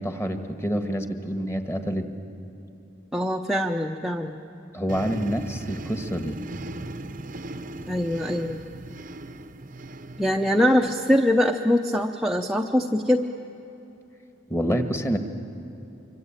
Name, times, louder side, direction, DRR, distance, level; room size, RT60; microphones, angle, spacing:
voice 1, 0.0-2.1 4.7-6.4 14.5-15.2, equal, 15° left, 7 dB, 1.5 m, -27 dB
voice 2, 3.1-4.4 7.9-8.6 10.2-13.2, left 1 dB, ahead, 1 dB, 0.7 m, -23 dB
sound 1, 4.9-11.3, right 2 dB, 40° right, 0.8 m, -38 dB
25.0 x 24.5 x 9.0 m, 3.0 s
head